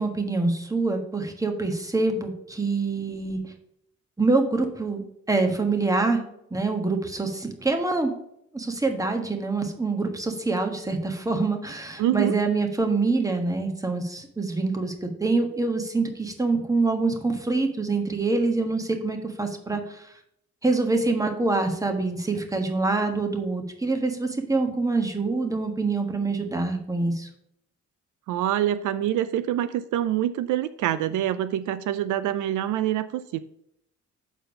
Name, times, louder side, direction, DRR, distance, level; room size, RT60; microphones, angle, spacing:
voice 1, 0.0-3.5 4.2-5.0 5.3-6.2 6.5-8.1 8.5-20.1 20.6-27.3, right 3 dB, 10° right, 4 dB, 1.3 m, -25 dB
voice 2, 12.0-12.3 28.3-33.4, right 12 dB, 80° right, 13 dB, 0.5 m, -25 dB
7.0 x 4.4 x 5.2 m, 0.73 s
cardioid pair, 90°, 30 cm